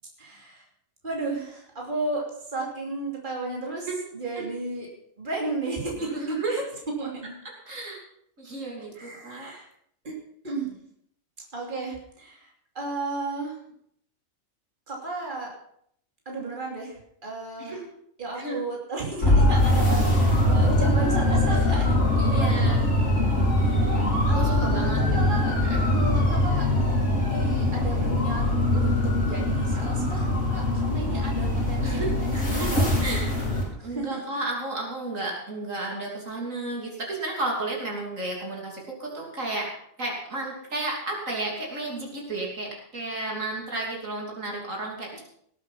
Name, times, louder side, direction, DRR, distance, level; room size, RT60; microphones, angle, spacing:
voice 1, 0.2-0.6 1.0-2.2 2.5-3.9 4.1-4.9 5.2-6.6 7.0-7.4 8.9-9.7 10.0-10.2 10.4-10.8 11.5-12.5 12.7-13.6 14.9-15.5 16.2-16.9 17.2-17.8 18.2-22.0 22.3-22.7 23.6-25.5 25.9-26.7 27.2-28.4 28.7-32.8 33.8-34.2, right 3 dB, 35° right, -1 dB, 3.0 m, -33 dB
voice 2, 6.0-6.6 7.6-8.0 8.4-9.5 17.6-17.8 18.3-18.6 22.2-22.8 24.3-25.0 25.3-25.8 31.8-39.7 40.0-45.2, right 2 dB, 70° right, -1 dB, 3.5 m, -33 dB
sound 1, 19.2-33.6, left 1 dB, 60° left, 4.6 m, -22 dB
18.0 x 8.4 x 5.8 m, 0.69 s
omnidirectional pair, 1.4 m